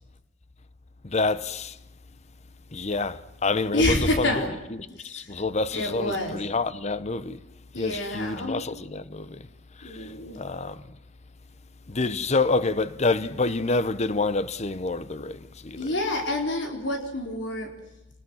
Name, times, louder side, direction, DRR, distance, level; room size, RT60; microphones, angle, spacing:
voice 1, 1.0-1.8 2.7-4.4 5.0-7.4 7.8-9.5 9.8-10.1 10.3-10.8 11.9-15.9, left 3 dB, 35° left, 0.8 m, -27 dB
voice 2, 3.7-4.5 5.0-5.3 5.7-6.4 7.7-8.6 9.8-10.4 15.8-17.7, left 1 dB, 70° left, 4.3 m, -28 dB
29.0 x 20.5 x 6.4 m
head